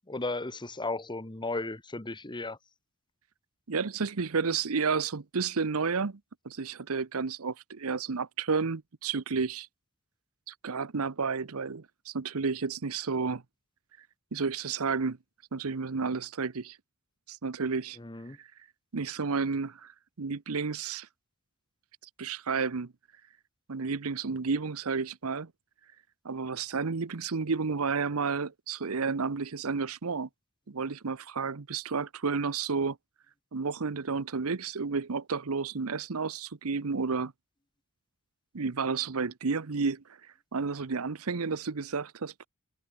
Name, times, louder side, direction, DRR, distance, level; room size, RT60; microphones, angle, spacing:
voice 1, 0.1-2.6 18.0-18.4, left 2 dB, 20° left, 1.3 m, -35 dB
voice 2, 3.7-6.2 6.4-9.7 10.5-13.4 14.3-15.2 15.5-16.8 17.3-18.0 18.9-19.9 20.2-21.1 22.2-22.9 23.7-25.5 26.2-30.3 30.7-33.0 33.5-37.3 38.5-40.0 40.5-42.5, right 5 dB, 70° right, 0.8 m, -31 dB
head